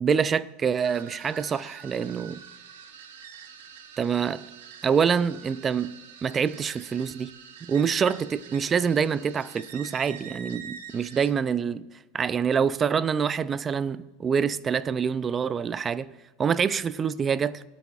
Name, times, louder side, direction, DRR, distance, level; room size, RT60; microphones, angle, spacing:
voice 1, 0.0-2.4 4.0-4.5 4.8-7.3 7.6-11.8 12.1-16.1 16.4-17.6, right 6 dB, 20° right, 0.4 m, -26 dB
sound 1, 0.8-11.3, right 7 dB, 85° right, 1.1 m, -45 dB
22.0 x 8.3 x 2.4 m
supercardioid pair, 140°, 0 cm